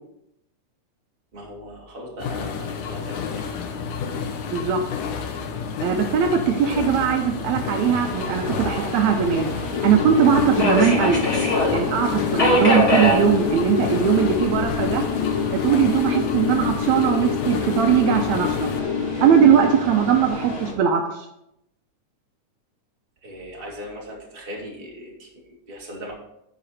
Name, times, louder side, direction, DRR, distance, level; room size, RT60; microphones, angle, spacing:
voice 1, 1.3-3.2 23.2-26.1, equal, 20° right, -3 dB, 1.8 m, -38 dB
sound 1, 2.2-18.8, left 6 dB, 85° left, 2.3 m, -31 dB
voice 2, 4.4-4.8 5.8-9.5 9.8-11.2 11.7-15.1 15.5-18.7 19.2-21.3, right 8 dB, 75° right, 4 dB, 1.9 m, -20 dB
Subway metro underground, 7.7-20.7, equal, 25° left, 1.7 m, -27 dB
sound 2, 9.7-19.7, left 8 dB, 50° left, 1.5 m, -27 dB
10.0 x 5.1 x 4.2 m, 0.82 s
omnidirectional pair, 3.5 m